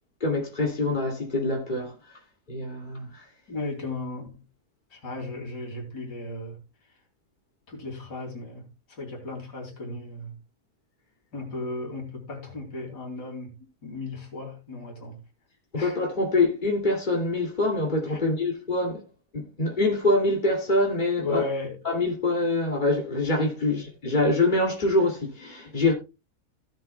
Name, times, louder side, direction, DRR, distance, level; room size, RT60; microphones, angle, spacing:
voice 1, 0.2-2.2 2.5-3.3 15.7-19.0 19.3-21.4 21.8-25.9, left 2 dB, 30° left, 2.8 m, -25 dB
voice 2, 3.5-4.4 4.9-6.6 6.9-7.0 7.7-10.4 11.3-15.2 15.7-16.0 18.1-18.2 21.2-21.8, left 3 dB, 85° left, 3.4 m, -35 dB
16.0 x 7.6 x 2.3 m
omnidirectional pair, 1.7 m